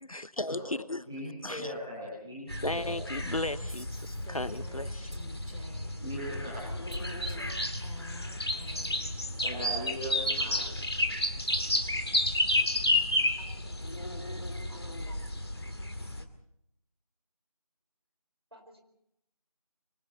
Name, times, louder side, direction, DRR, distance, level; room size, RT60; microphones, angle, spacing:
voice 1, 0.0-1.0 1.4-1.7 2.6-5.2, left 2 dB, 60° left, 15 dB, 1.1 m, -35 dB
voice 2, 1.0-2.9 6.0-6.9 9.4-10.7, equal, 5° right, -7 dB, 2.1 m, -39 dB
sound 1, 2.5-16.2, left 1 dB, 40° left, 2.2 m, -32 dB
Female speech woman speaking, 2.7-6.0 6.9-9.1, left 1 dB, 65° right, 5.6 m, -48 dB
voice 3, 13.4-14.2 14.7-14.8 15.0-15.8 18.5-18.8, right 1 dB, 40° right, 5 dB, 4.6 m, -57 dB
27.0 x 24.5 x 4.2 m, 0.78 s
figure-of-eight pair, 175°, 20 cm